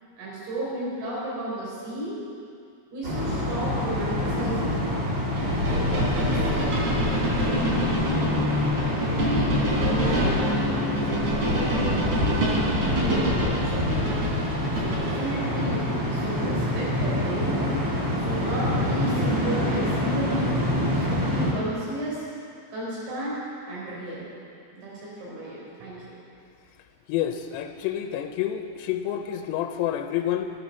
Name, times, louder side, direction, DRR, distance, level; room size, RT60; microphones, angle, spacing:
voice 1, 0.2-2.2 2.9-4.7 5.4-6.8 7.2-8.3 8.8-13.9 14.8-17.6 18.2-20.4 20.8-22.2 22.7-24.3 24.7-26.2, right 1 dB, 90° right, -7 dB, 7.2 m, -33 dB
sound 1, 3.0-21.5, left 1 dB, 25° right, 2.1 m, -26 dB
sound 2, 5.3-15.3, equal, 60° right, 5.0 m, -27 dB
voice 2, 27.1-30.5, left 11 dB, 80° left, 5 dB, 2.8 m, -28 dB
12.5 x 12.0 x 7.0 m, 2.4 s
omnidirectional pair, 5.0 m